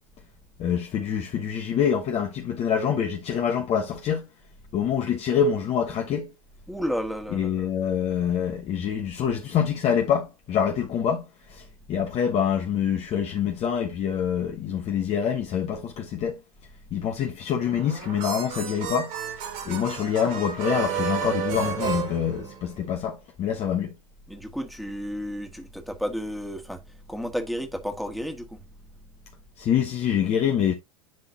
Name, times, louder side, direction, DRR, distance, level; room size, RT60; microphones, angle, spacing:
voice 1, 0.6-4.3 4.7-6.3 7.3-16.4 16.9-19.4 19.6-24.0 29.6-30.7, left 8 dB, 35° left, 1.2 m, -26 dB
voice 2, 6.7-7.7 24.3-28.6, equal, ahead, 1.8 m, -32 dB
sound 1, 17.6-23.0, right 8 dB, 50° right, 3.0 m, -32 dB
10.5 x 3.8 x 2.8 m
figure-of-eight pair, 85°, 18 cm